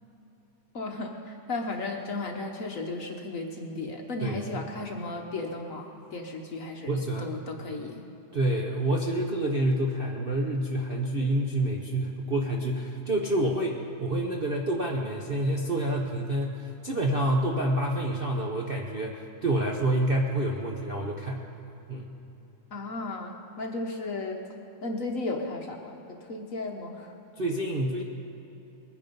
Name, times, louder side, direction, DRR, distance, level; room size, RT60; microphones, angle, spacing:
voice 1, 0.7-8.0 22.7-24.4 24.8-27.2, left 2 dB, 50° left, 2 dB, 1.2 m, -35 dB
voice 2, 4.2-4.6 6.9-7.4 8.3-21.4 21.9-22.1 27.4-28.0, right 1 dB, 40° right, -2 dB, 0.8 m, -28 dB
21.0 x 9.8 x 5.3 m, 3.0 s
omnidirectional pair, 2.2 m